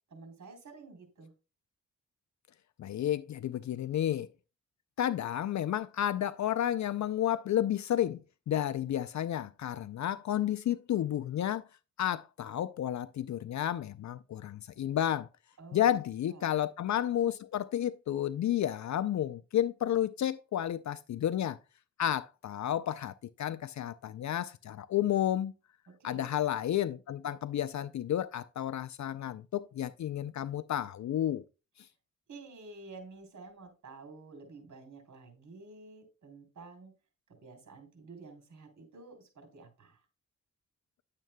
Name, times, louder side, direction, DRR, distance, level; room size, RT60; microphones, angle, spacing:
voice 1, 0.1-1.3 15.6-15.9 16.3-16.6 25.9-26.4 32.3-36.9 37.3-40.0, right 3 dB, 70° right, 3.4 m, -50 dB
voice 2, 2.8-4.3 5.0-11.7 12.0-15.3 15.7-21.6 22.0-25.5 26.0-31.4, left 11 dB, 65° left, 0.4 m, -31 dB
10.5 x 7.4 x 2.2 m
cardioid pair, 70°, 31 cm